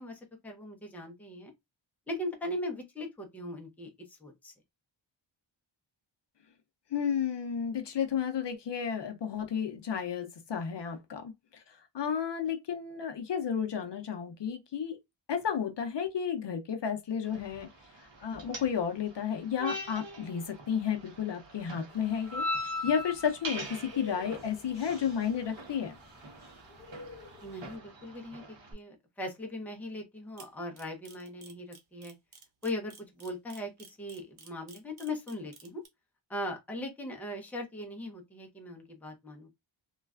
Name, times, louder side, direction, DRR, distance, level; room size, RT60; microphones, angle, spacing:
voice 1, 0.0-1.5 2.1-3.9 4.2-4.5 27.4-32.1 32.6-35.8 36.3-39.5, left 1 dB, 5° left, 0.6 m, -39 dB
voice 2, 6.9-15.0 15.3-17.7 18.2-26.0, left 7 dB, 60° left, 0.6 m, -32 dB
sound 1, 17.2-28.7, left 1 dB, 60° right, 1.0 m, -41 dB
sound 2, 21.9-27.8, left 2 dB, 40° right, 1.5 m, -52 dB
Camera, 30.4-35.9, right 6 dB, 85° right, 0.9 m, -52 dB
3.1 x 2.3 x 2.3 m
wide cardioid pair, 165°, 48 cm